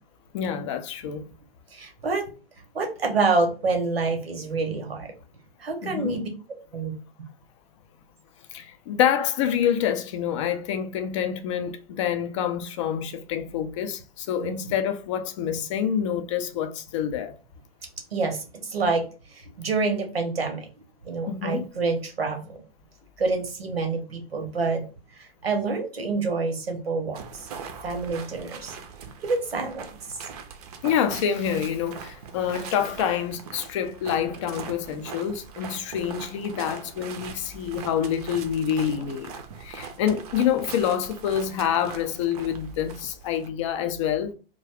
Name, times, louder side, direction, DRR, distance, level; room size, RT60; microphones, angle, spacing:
voice 1, 0.3-1.3 5.8-6.2 8.5-17.3 21.3-21.7 30.8-39.3 39.6-44.3, left 9 dB, 35° left, 0.4 m, -27 dB
voice 2, 1.7-2.3 2.7-5.1 5.6-6.9 14.4-14.7 18.1-20.7 21.0-22.6 23.2-24.8 25.1-27.5 27.8-28.8 29.2-30.2, right 3 dB, 85° right, 0.8 m, -27 dB
sound 1, 27.1-43.5, right 6 dB, 40° right, 0.5 m, -41 dB
2.4 x 2.2 x 3.3 m
figure-of-eight pair, 115°, 30 cm